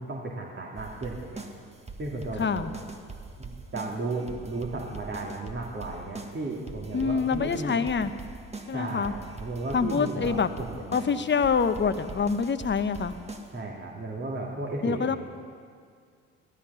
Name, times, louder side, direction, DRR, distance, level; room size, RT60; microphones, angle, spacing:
voice 1, 0.0-1.4 2.0-2.7 3.4-7.8 8.7-11.2 13.5-15.2, right 2 dB, 35° right, -2 dB, 2.6 m, -35 dB
sound 1, 0.8-13.6, right 3 dB, 20° right, 1.7 m, -42 dB
voice 2, 2.4-2.7 6.9-8.1 8.7-9.1 9.7-10.5 10.9-13.1 14.8-15.2, left 5 dB, 35° left, 10 dB, 1.1 m, -26 dB
16.5 x 13.0 x 5.7 m, 2.2 s
hypercardioid pair, 55°, 34 cm